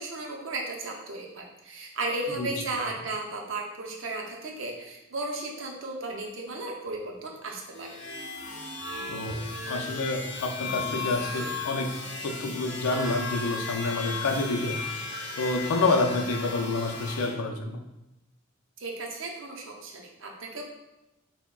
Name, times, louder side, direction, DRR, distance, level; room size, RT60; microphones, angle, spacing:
voice 1, 0.0-8.0 18.8-20.6, right 2 dB, 65° right, 0 dB, 0.6 m, -35 dB
sound 1, 7.7-17.3, left 3 dB, 55° left, 0.7 m, -36 dB
voice 2, 9.1-9.4 9.7-11.9 12.2-14.7 15.4-17.8, left 3 dB, 90° left, 3 dB, 0.5 m, -28 dB
5.7 x 2.2 x 2.3 m, 0.94 s
head